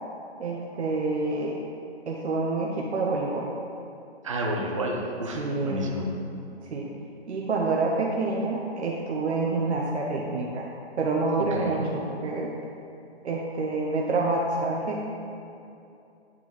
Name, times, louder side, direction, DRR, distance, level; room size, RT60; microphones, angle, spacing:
voice 1, 0.4-1.6 2.1-3.5 5.3-6.0 6.7-6.9 7.3-10.7 11.0-12.5 13.2-15.0, right 3 dB, 85° right, -2 dB, 0.8 m, -27 dB
voice 2, 4.2-6.1 11.6-11.9, right 1 dB, 30° right, -1 dB, 0.5 m, -30 dB
9.0 x 3.8 x 3.1 m, 2.7 s
hypercardioid pair, 170°, 33 cm